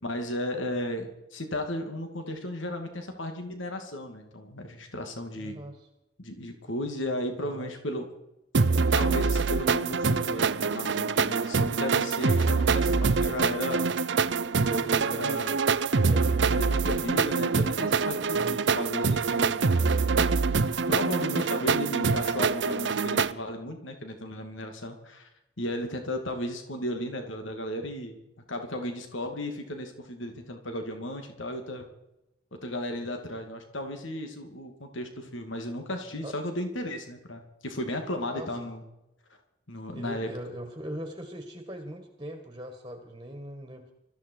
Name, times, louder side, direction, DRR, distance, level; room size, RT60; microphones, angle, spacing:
voice 1, 0.0-5.6 6.2-8.1 8.9-13.9 14.7-15.6 16.5-19.6 20.2-20.3 20.9-25.3 25.6-28.2 28.5-31.9 32.6-38.8 39.7-40.3, left 1 dB, 75° left, 5 dB, 2.5 m, -35 dB
voice 2, 5.4-5.9 7.4-7.7 14.7-15.5 16.1-16.6 18.4-18.6 36.2-36.3 38.3-38.7 39.9-43.9, equal, 20° right, 4 dB, 1.8 m, -40 dB
sound 1, 8.5-23.3, right 4 dB, 60° right, 0.6 m, -25 dB
21.5 x 14.0 x 4.7 m, 0.90 s
head